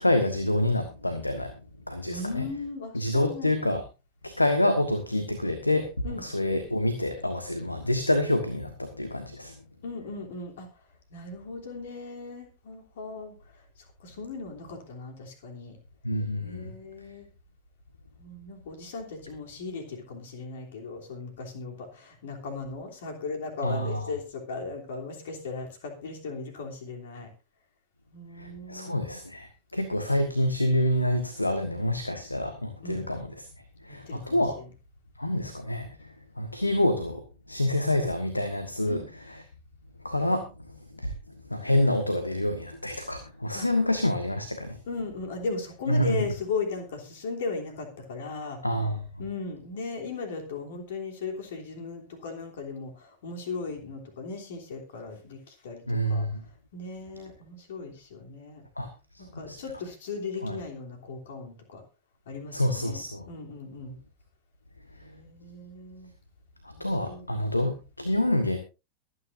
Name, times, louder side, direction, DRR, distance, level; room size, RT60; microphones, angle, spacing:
voice 1, 0.0-1.5 1.9-2.5 2.9-3.8 4.2-9.5 16.0-16.7 23.6-24.0 28.4-33.5 33.8-34.6 35.2-39.0 39.3-39.4 40.0-41.1 41.5-44.8 45.9-46.3 48.6-49.0 55.9-56.4 58.8-58.9 59.1-59.6 60.4-60.6 62.5-63.3 66.6-68.6, left 1 dB, 85° left, 9 dB, 1.3 m, -27 dB
voice 2, 2.1-3.6 6.0-6.3 9.8-10.7 11.1-13.6 14.0-15.8 16.4-17.3 18.2-27.3 28.1-29.1 32.8-33.0 33.9-34.7 38.8-39.1 43.5-43.7 44.9-48.6 49.2-56.3 56.7-58.6 59.2-61.8 62.3-64.0 65.0-66.1 66.8-67.2, left 4 dB, 60° left, 3 dB, 3.1 m, -37 dB
23.0 x 9.7 x 2.6 m, 0.28 s
figure-of-eight pair, 90°, 0 cm